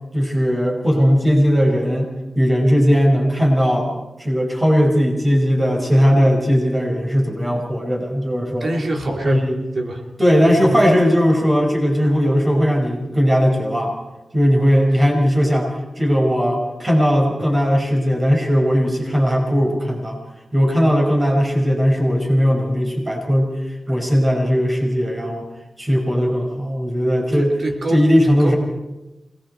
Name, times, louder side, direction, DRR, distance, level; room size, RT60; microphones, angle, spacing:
voice 1, 0.1-2.1 2.4-3.9 4.2-8.7 9.1-9.5 10.2-13.9 14.3-20.2 20.5-23.5 23.9-25.4 25.8-27.5 27.9-28.6, equal, 25° right, 0 dB, 5.6 m, -18 dB
voice 2, 8.6-9.5 9.7-10.0 10.5-10.7 27.3-28.0 28.3-28.5, right 1 dB, 65° right, 2 dB, 3.0 m, -26 dB
27.5 x 20.5 x 4.6 m, 1.0 s
cardioid pair, 70°, 0 cm